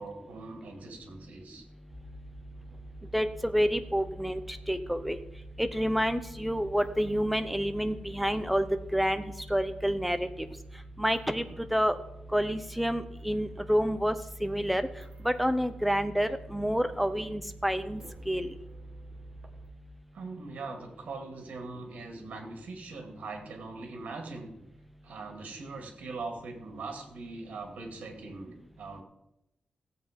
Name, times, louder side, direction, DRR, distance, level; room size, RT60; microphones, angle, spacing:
voice 1, 0.0-1.6 20.1-24.5 25.0-29.0, right 3 dB, 75° right, 4 dB, 2.4 m, -41 dB
sound 1, 1.9-19.7, right 2 dB, 35° right, 1.2 m, -47 dB
voice 2, 3.1-4.4 4.7-5.2 5.6-8.7 8.9-9.2 9.5-10.3 11.0-11.4 11.7-11.9 12.3-14.1 14.4-14.8 15.2-18.0 18.3-18.5, equal, ahead, 9 dB, 0.7 m, -28 dB
15.0 x 7.9 x 5.2 m, 0.86 s
wide cardioid pair, 165°, 3 cm